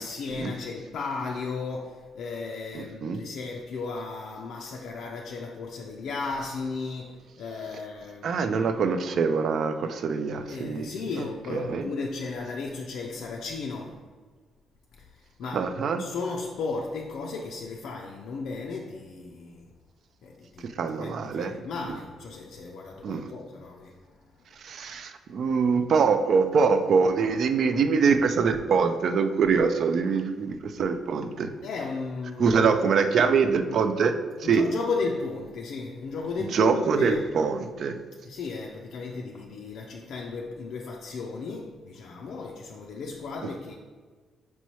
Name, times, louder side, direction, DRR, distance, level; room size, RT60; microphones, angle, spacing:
voice 1, 0.0-8.5 10.5-14.0 15.4-15.6 16.0-19.7 20.2-20.7 21.0-24.0 31.6-32.7 34.4-37.2 38.3-43.7, left 4 dB, 75° left, 0 dB, 0.3 m, -35 dB
voice 2, 2.7-3.2 8.2-10.9 11.2-11.9 15.5-16.0 20.8-21.6 23.0-23.3 24.6-31.5 32.4-34.6 36.4-37.9 43.4-43.5, right 5 dB, 60° right, 9 dB, 0.3 m, -24 dB
4.5 x 3.0 x 2.8 m, 1.5 s
cardioid pair, 90°, 0 cm